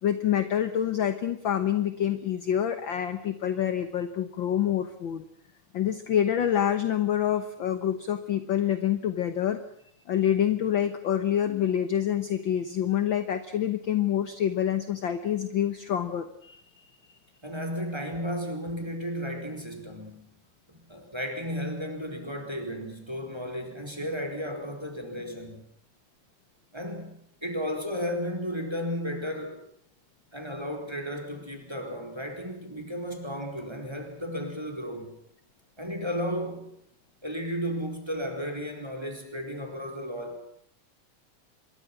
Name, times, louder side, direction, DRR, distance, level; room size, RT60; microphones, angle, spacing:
voice 1, 0.0-5.2 5.7-9.6 10.1-16.9, left 10 dB, 55° left, 10 dB, 1.4 m, -27 dB
voice 2, 17.4-20.3 20.7-25.6 26.7-27.1 27.4-29.6 30.3-35.1 35.8-36.7 37.2-40.4, equal, 10° right, 4 dB, 4.4 m, -34 dB
26.5 x 23.0 x 6.0 m, 0.67 s
omnidirectional pair, 3.3 m